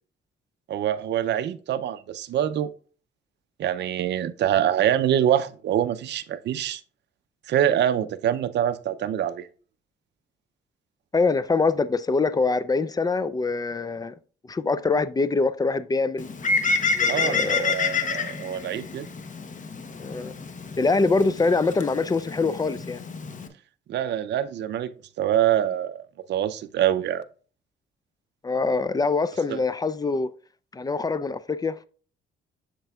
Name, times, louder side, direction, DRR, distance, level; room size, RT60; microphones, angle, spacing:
voice 1, 0.7-2.7 3.6-6.8 7.5-9.5 17.1-19.1 23.9-24.9 25.2-26.0 26.3-27.2 29.5-29.6, right 10 dB, 60° right, 0.5 m, -25 dB
voice 2, 11.1-14.1 14.5-16.3 16.9-17.7 20.0-20.3 20.8-23.0 28.4-30.3 30.7-31.7, left 3 dB, 20° left, 0.4 m, -24 dB
Bird, 16.2-23.5, left 4 dB, 40° left, 0.9 m, -28 dB
7.6 x 6.6 x 2.3 m
cardioid pair, 90°, 20 cm